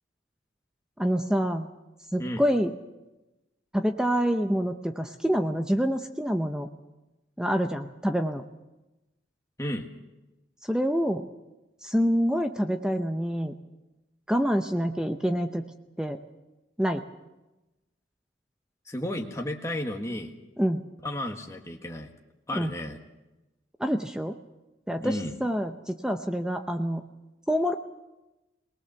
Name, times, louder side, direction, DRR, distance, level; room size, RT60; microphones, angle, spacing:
voice 1, 1.0-1.7 2.1-2.7 3.7-6.7 7.4-8.4 10.6-11.2 11.8-13.5 14.3-15.6 16.0-16.2 16.8-17.0 20.6-20.8 22.5-22.7 23.8-24.4 24.9-27.0 27.5-27.7, equal, 5° right, 6 dB, 0.7 m, -26 dB
voice 2, 18.9-20.3 21.0-22.1 22.5-23.0 25.0-25.4, left 1 dB, 15° left, 2 dB, 1.6 m, -33 dB
22.0 x 19.5 x 6.9 m, 1.0 s
head